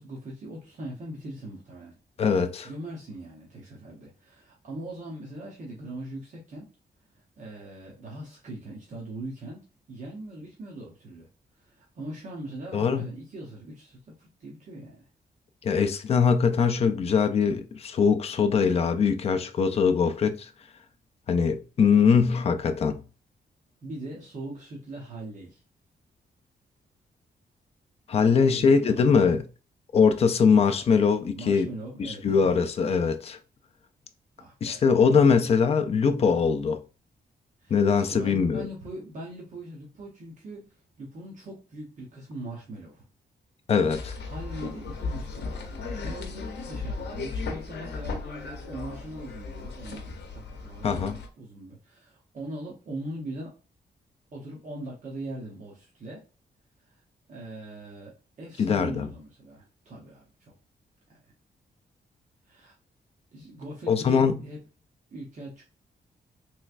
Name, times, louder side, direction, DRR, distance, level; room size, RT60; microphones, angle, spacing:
voice 1, 0.0-2.0 2.6-6.7 7.1-11.3 11.6-15.1 23.8-25.6 28.1-29.2 31.3-32.2 34.4-34.9 37.6-43.0 44.2-50.0 50.3-53.5 54.3-56.2 56.8-57.0 57.3-60.5 62.5-62.7 63.3-64.6 65.1-65.7, right 1 dB, 45° right, 0.8 m, -41 dB
voice 2, 2.2-2.7 12.7-13.1 15.6-20.5 21.3-23.0 28.1-29.5 29.9-31.7 32.0-33.4 34.6-36.8 37.7-38.6 43.7-44.1 50.8-51.1 58.6-59.1 63.9-64.4, left 6 dB, 35° left, 0.4 m, -22 dB
sound 1, 43.9-51.3, left 4 dB, 85° left, 0.7 m, -36 dB
3.3 x 3.1 x 2.4 m
wide cardioid pair, 175°, 17 cm